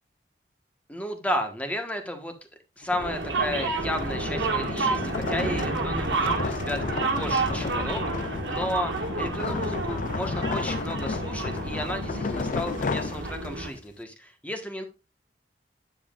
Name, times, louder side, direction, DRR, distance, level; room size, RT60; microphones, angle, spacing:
voice 1, 0.9-2.3 2.8-14.8, left 1 dB, 10° left, 5 dB, 1.3 m, -33 dB
sound 1, 2.8-13.8, left 4 dB, 50° left, 0.4 m, -33 dB
sound 2, 3.0-13.7, right 3 dB, 85° right, 1.8 m, -30 dB
9.6 x 7.2 x 2.5 m, 0.28 s
head